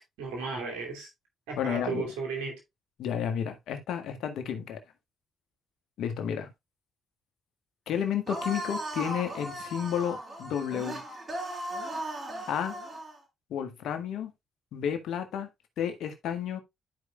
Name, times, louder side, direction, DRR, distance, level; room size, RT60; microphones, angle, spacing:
voice 1, 0.2-1.1 1.5-2.6, right 4 dB, 90° right, 2.6 m, -34 dB
voice 2, 1.6-2.0 3.0-4.8 6.0-6.5 7.9-11.0 12.5-12.8 13.5-14.3 14.7-15.5 15.8-16.6, left 8 dB, 75° left, 1.6 m, -31 dB
sound 1, 8.3-13.2, right 1 dB, 45° right, 4.4 m, -37 dB
12.5 x 4.9 x 2.3 m
supercardioid pair, 55°, 0 cm